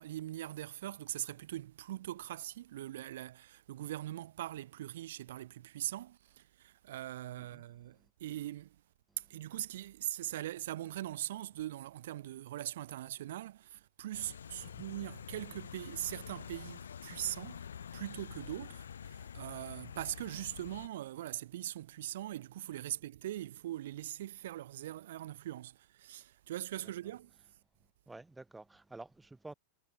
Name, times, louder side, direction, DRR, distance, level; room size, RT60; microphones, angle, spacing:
voice 1, 0.0-8.8 9.2-17.6 17.9-27.3, right 13 dB, 60° right, 0.8 m, -41 dB
sound 1, 14.1-20.9, left 8 dB, 70° left, 2.8 m, -47 dB
voice 2, 28.1-29.5, right 2 dB, 5° right, 0.8 m, -50 dB
figure-of-eight pair, 90°, 0 cm